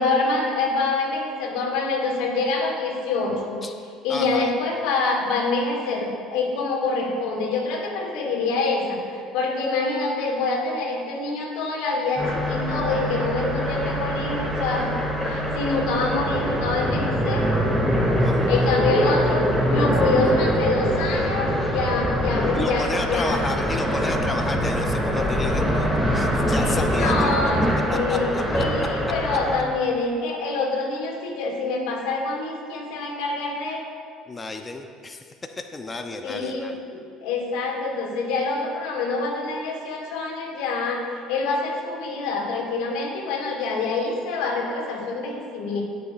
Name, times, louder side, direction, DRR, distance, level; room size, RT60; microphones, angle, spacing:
voice 1, 0.0-3.6 4.0-14.9 15.2-17.5 18.5-23.4 26.1-26.2 26.5-33.8 36.2-45.8, left 3 dB, 80° left, -1 dB, 2.4 m, -26 dB
voice 2, 4.1-4.5 18.2-18.8 22.5-25.9 26.1-27.4 28.1-28.6 34.3-35.3 35.6-36.7, left 3 dB, 25° left, 5 dB, 0.8 m, -32 dB
sound 1, 12.2-29.6, equal, 5° left, 2.5 m, -23 dB
20.5 x 7.0 x 2.5 m, 2.2 s
supercardioid pair, 80°, 0 cm